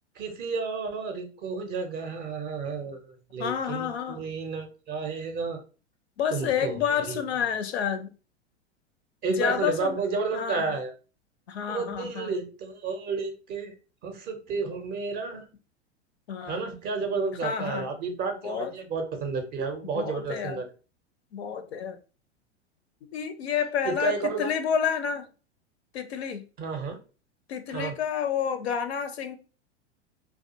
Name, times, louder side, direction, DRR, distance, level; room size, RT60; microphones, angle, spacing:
voice 1, 0.2-3.0 3.3-5.6 6.3-7.2 9.2-10.9 11.7-13.7 14.0-15.4 16.5-20.7 23.8-24.5 26.6-27.0 27.7-27.9, right 4 dB, 25° right, 0.5 m, -31 dB
voice 2, 3.4-4.2 6.2-8.1 9.3-10.0 10.3-10.8 11.5-12.4 16.3-16.6 17.4-17.9 18.4-18.7 19.8-20.6 21.3-22.0 23.1-25.3 25.9-26.4 27.5-29.4, left 8 dB, 65° left, 0.5 m, -29 dB
2.3 x 2.3 x 2.7 m
figure-of-eight pair, 90°, 35 cm